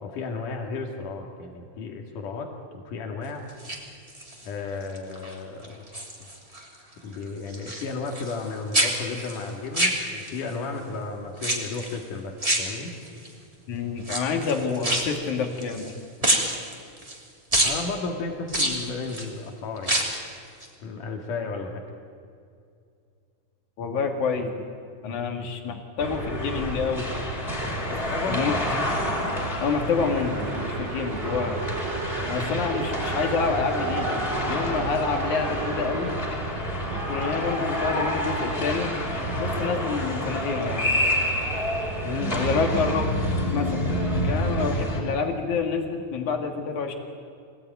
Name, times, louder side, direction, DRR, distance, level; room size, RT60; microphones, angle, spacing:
voice 1, 0.0-3.5 4.4-5.9 7.0-12.9 17.6-20.1 20.8-21.8 25.0-25.2 27.9-28.5 42.0-42.5, left 4 dB, 85° left, 2 dB, 3.8 m, -33 dB
sound 1, 3.5-4.5 4.9-5.3 5.6-6.7 6.9-8.5 8.7-10.5 11.4-12.0 12.4-13.3 14.0-15.9 16.2-17.2 17.5-17.8 18.5-19.3 19.8-20.3 20.6-20.7, right 1 dB, 10° right, 3.0 m, -27 dB
voice 2, 13.7-15.9 23.8-24.5 25.0-27.1 28.3-28.6 29.6-31.6 32.3-36.1 36.9-40.9 42.3-43.1 43.5-43.8 44.1-46.9, left 5 dB, 70° left, 4 dB, 3.8 m, -28 dB
sound 2, 26.0-45.0, equal, 15° left, 5.3 m, -28 dB
sound 3, 30.0-36.2, right 7 dB, 65° right, 2.1 m, -36 dB
26.5 x 19.0 x 9.5 m, 2.3 s
omnidirectional pair, 3.6 m